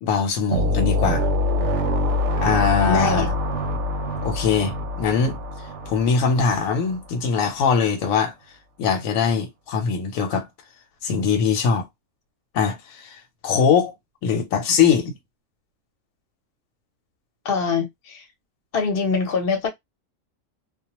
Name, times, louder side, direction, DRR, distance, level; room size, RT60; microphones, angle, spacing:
voice 1, 0.0-1.2 2.4-3.3 4.2-5.4 5.9-8.3 8.8-10.5 11.0-11.9 12.5-13.9 14.2-15.2, left 6 dB, 85° left, 1.0 m, -21 dB
sound 1, 0.5-7.0, left 1 dB, 70° right, 0.8 m, -25 dB
voice 2, 2.9-3.3 17.4-18.2 18.7-19.7, left 5 dB, 55° left, 0.9 m, -23 dB
2.3 x 2.1 x 2.8 m
omnidirectional pair, 1.4 m